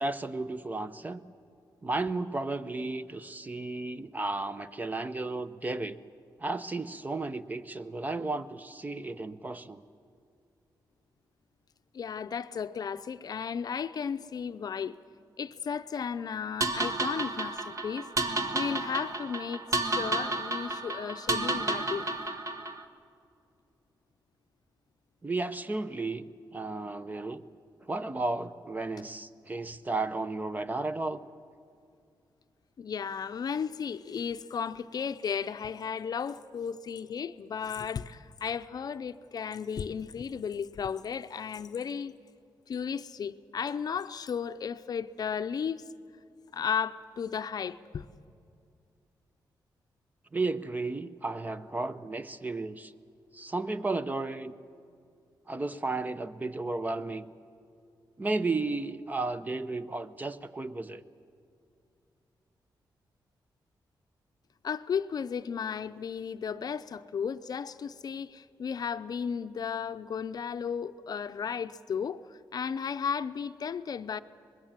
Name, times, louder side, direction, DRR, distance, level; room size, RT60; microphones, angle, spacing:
voice 1, 0.0-1.2 1.8-6.0 6.4-9.8 25.2-26.2 26.5-27.4 27.9-31.2 50.3-52.9 53.3-54.6 55.5-57.3 58.2-61.0, right 3 dB, 20° right, 0.7 m, -33 dB
voice 2, 11.9-15.0 15.4-18.1 18.5-22.1 32.8-42.1 42.7-45.8 46.5-48.1 64.6-74.2, left 7 dB, 55° left, 0.6 m, -34 dB
sound 1, 16.6-22.8, right 2 dB, 40° right, 1.4 m, -31 dB
24.0 x 21.0 x 7.5 m
wide cardioid pair, 120°, 8 cm